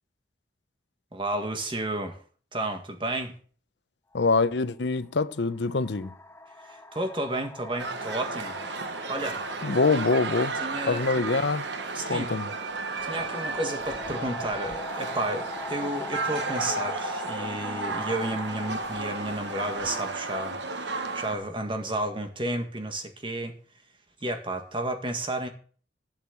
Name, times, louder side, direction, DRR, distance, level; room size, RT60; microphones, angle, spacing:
voice 1, 1.1-2.2 2.5-3.4 6.6-8.5 9.1-9.4 10.6-11.0 12.0-12.3 13.0-23.5 24.2-25.5, right 1 dB, 30° right, 1.7 m, -32 dB
voice 2, 4.1-6.1 9.6-10.5 10.9-11.7 12.1-12.5, left 3 dB, 80° left, 0.7 m, -25 dB
sound 1, 4.1-4.3 5.3-21.9, left 3 dB, 15° left, 0.5 m, -42 dB
sound 2, 7.8-21.4, right 3 dB, 85° right, 1.2 m, -33 dB
11.5 x 6.2 x 7.6 m
head